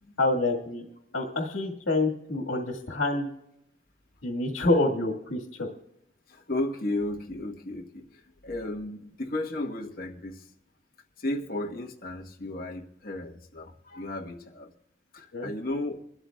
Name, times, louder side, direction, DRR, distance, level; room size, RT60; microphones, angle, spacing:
voice 1, 0.2-0.8 1.1-3.3 4.2-5.7 15.3-15.5, left 2 dB, 80° left, 0 dB, 1.7 m, -27 dB
voice 2, 6.3-10.5 11.2-14.7 15.1-16.0, left 1 dB, 50° left, 0 dB, 1.2 m, -34 dB
27.0 x 13.0 x 2.3 m, 0.81 s
head